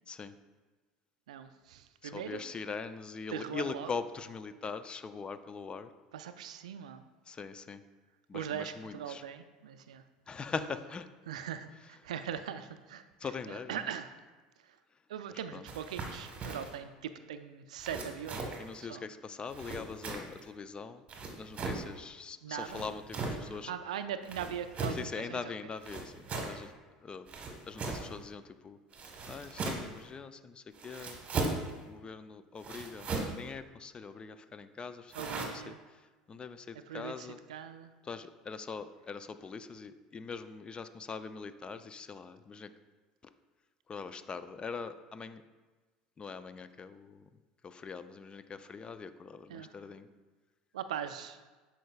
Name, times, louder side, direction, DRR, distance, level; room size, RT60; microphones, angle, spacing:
voice 1, 1.3-2.4 3.3-3.9 6.1-7.0 8.3-10.0 11.3-14.1 14.6-14.8 15.1-19.0 22.4-22.8 23.5-25.4 35.1-35.8 36.9-37.9 49.5-49.7 50.7-51.4, right 9 dB, 80° right, 10 dB, 0.3 m, -41 dB
voice 2, 2.0-5.9 7.3-7.8 8.3-9.2 10.3-11.1 13.2-13.8 15.5-15.6 18.6-21.0 21.4-23.7 24.9-26.7 27.0-27.3 27.7-28.8 29.3-31.2 31.9-35.7 36.3-37.4 38.0-42.7 43.9-45.4 46.2-47.3 47.6-50.1, left 5 dB, 25° left, 12 dB, 0.4 m, -42 dB
sound 1, 15.7-16.8 17.8-18.7 19.5-20.4 21.1-21.9 22.6-23.5 24.2-25.1 25.8-26.6 27.3-28.2 28.9-30.0 30.7-31.7 32.6-33.4 35.1-35.4, right 3 dB, 35° right, 1.2 m, -38 dB
10.0 x 4.6 x 2.3 m, 1.3 s
hypercardioid pair, 75°, 4 cm